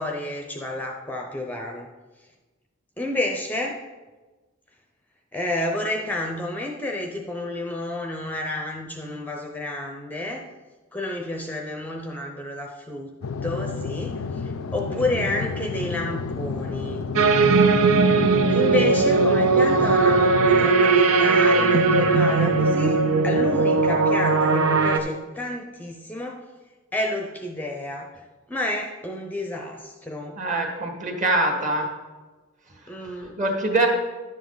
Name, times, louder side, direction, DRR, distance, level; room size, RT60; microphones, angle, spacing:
voice 1, 0.0-1.9 3.0-3.8 5.3-10.4 10.9-13.1 13.4-17.1 18.5-26.4 26.9-28.1 28.5-30.4 32.9-33.3, left 1 dB, 10° left, 1 dB, 0.6 m, -30 dB
sound 1, 13.2-20.7, left 4 dB, 80° left, 0.4 m, -31 dB
sound 2, 17.2-25.0, right 4 dB, 80° right, 0.7 m, -19 dB
voice 2, 30.4-31.9 33.4-33.9, right 2 dB, 35° right, 1 dB, 1.7 m, -23 dB
10.5 x 7.3 x 4.0 m, 1.2 s
head